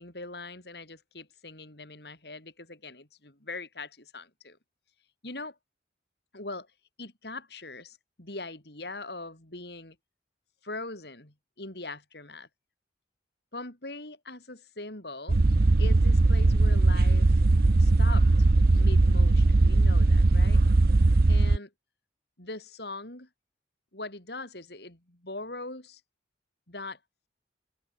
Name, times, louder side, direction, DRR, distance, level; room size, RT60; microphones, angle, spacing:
voice 1, 0.0-4.6 5.2-5.6 6.3-6.7 7.0-10.0 10.6-12.5 13.5-15.4 15.8-17.4 17.8-18.3 18.7-20.6 21.3-21.7 22.4-23.3 23.9-26.0 26.7-27.0, left 2 dB, 60° left, 4.6 m, -41 dB
sound 1, 15.3-21.6, right 2 dB, 55° right, 0.7 m, -20 dB
open air
head